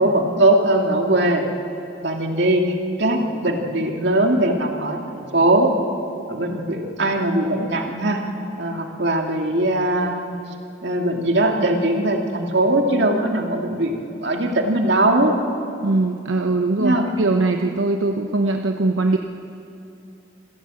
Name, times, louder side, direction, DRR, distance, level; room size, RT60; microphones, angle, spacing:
voice 1, 0.0-1.4 2.0-2.6 3.0-5.7 6.3-8.2 8.6-10.3 10.8-15.4 16.8-17.1, right 1 dB, 65° right, 2 dB, 2.3 m, -20 dB
voice 2, 15.8-19.2, right 2 dB, 85° right, 4 dB, 0.9 m, -21 dB
26.0 x 16.0 x 7.7 m, 2.7 s
head